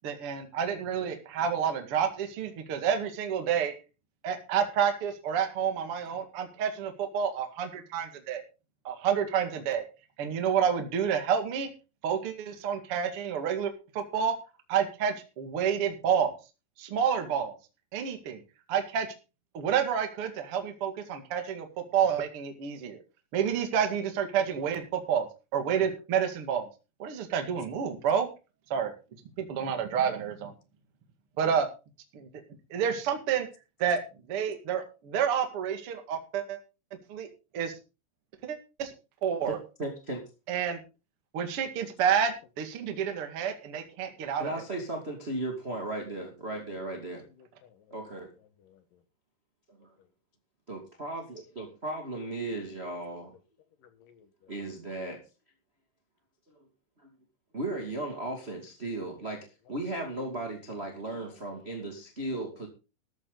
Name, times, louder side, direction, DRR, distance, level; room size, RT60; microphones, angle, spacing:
voice 1, 0.0-3.7 4.2-8.4 8.8-9.8 10.2-11.7 12.0-14.3 14.7-16.3 16.8-17.6 17.9-18.4 18.7-19.1 19.5-21.7 21.9-23.0 23.3-25.3 25.5-26.7 27.0-28.3 28.7-28.9 29.4-30.5 31.4-31.7 32.1-32.3 32.7-33.5 33.8-34.0 34.3-36.6 37.1-37.3 37.5-37.7 38.4-38.9 39.2-39.6 40.5-40.8 41.3-44.5, right 8 dB, 45° right, 5 dB, 2.0 m, -29 dB
voice 2, 39.5-40.2 44.4-47.2 47.9-48.3 49.8-49.9 50.7-53.3 54.5-55.2 57.5-59.4 59.7-62.7, right 2 dB, 25° right, 1 dB, 1.5 m, -36 dB
voice 3, 47.3-47.9 48.6-48.8 53.8-54.5 61.6-61.9 62.5-62.7, left 8 dB, 65° left, 9 dB, 2.4 m, -59 dB
13.5 x 12.0 x 4.0 m, 0.32 s
omnidirectional pair, 5.3 m